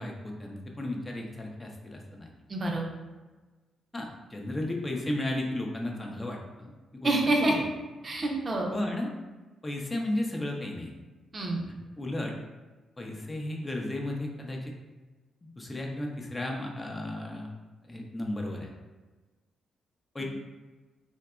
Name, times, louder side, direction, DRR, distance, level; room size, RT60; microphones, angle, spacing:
voice 1, 0.0-2.3 3.9-7.1 7.4-7.6 8.7-9.1 9.6-10.9 12.0-12.3 13.0-14.6 15.6-17.5 17.8-18.7 20.1-20.2, left 1 dB, 25° left, 0 dB, 0.5 m, -34 dB
voice 2, 2.5-2.8 7.0-7.5 8.0-8.7 11.3-11.6, right 2 dB, 45° right, 0 dB, 0.5 m, -27 dB
2.7 x 2.1 x 2.3 m, 1.2 s
hypercardioid pair, 40°, 0 cm